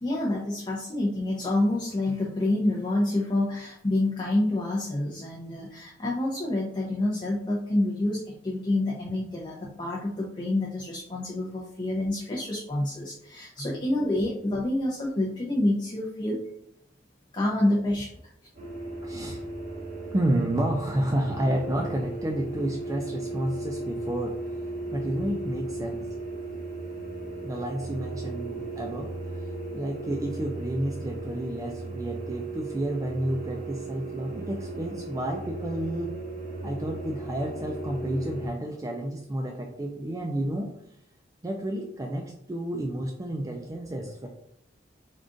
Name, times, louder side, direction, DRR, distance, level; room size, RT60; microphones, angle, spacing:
voice 1, 0.0-16.4 17.3-18.1, left 1 dB, 25° left, -3 dB, 0.5 m, -27 dB
sound 1, 18.5-38.5, right 2 dB, 45° right, 1.1 m, -36 dB
voice 2, 19.0-19.5 20.1-24.4 24.9-26.1 27.4-36.1 36.6-40.7 41.4-44.3, right 1 dB, 20° right, 1 dB, 0.3 m, -30 dB
3.7 x 2.4 x 3.7 m, 0.73 s
head